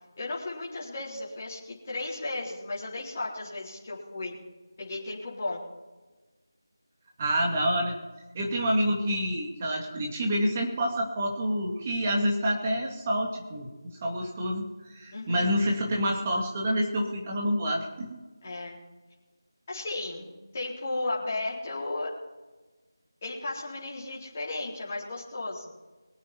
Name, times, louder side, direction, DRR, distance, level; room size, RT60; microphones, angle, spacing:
voice 1, 0.2-4.4 4.8-5.6 15.1-15.5 18.4-18.8 19.7-22.1 23.2-25.7, left 2 dB, 30° left, -6 dB, 4.0 m, -35 dB
voice 2, 7.2-7.9 8.3-13.7 14.0-18.2, equal, 20° right, -1 dB, 2.4 m, -28 dB
23.0 x 8.5 x 4.4 m, 1.2 s
figure-of-eight pair, 170°, 2 cm